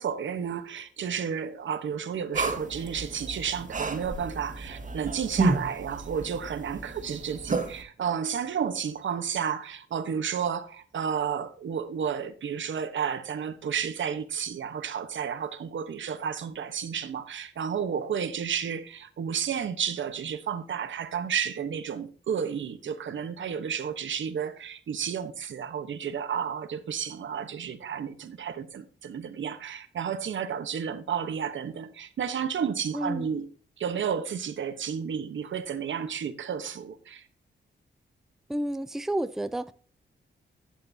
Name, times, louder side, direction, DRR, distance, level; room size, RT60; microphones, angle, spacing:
voice 1, 0.0-33.5 33.8-37.2, right 7 dB, 80° right, 1.1 m, -32 dB
sound 1, 2.3-7.8, right 3 dB, 40° right, 1.9 m, -31 dB
voice 2, 32.9-33.3 38.5-39.7, right 1 dB, ahead, 0.5 m, -30 dB
11.5 x 8.6 x 2.8 m
wide cardioid pair, 110°, 20 cm